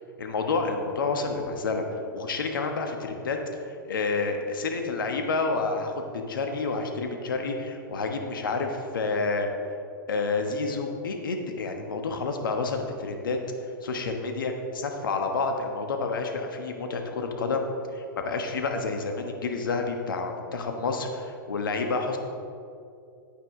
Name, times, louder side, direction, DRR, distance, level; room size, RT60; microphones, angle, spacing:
voice 1, 0.2-1.8 2.1-9.5 10.1-13.4 13.8-17.7 17.9-22.2, left 3 dB, 70° left, 4 dB, 1.2 m, -29 dB
10.0 x 8.9 x 3.7 m, 2.4 s
figure-of-eight pair, 105°, 12 cm